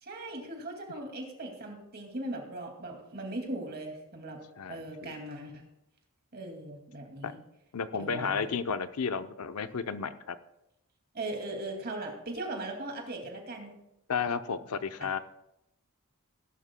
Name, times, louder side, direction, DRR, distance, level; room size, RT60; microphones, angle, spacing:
voice 1, 0.0-4.4 4.7-5.6 6.3-7.4 7.9-8.5 11.1-13.7 15.0-15.1, right 2 dB, 45° right, 2 dB, 2.3 m, -39 dB
voice 2, 4.6-5.2 7.2-7.3 7.7-10.4 14.1-15.2, left 6 dB, 85° left, 11 dB, 0.6 m, -33 dB
18.0 x 11.0 x 2.2 m, 0.85 s
head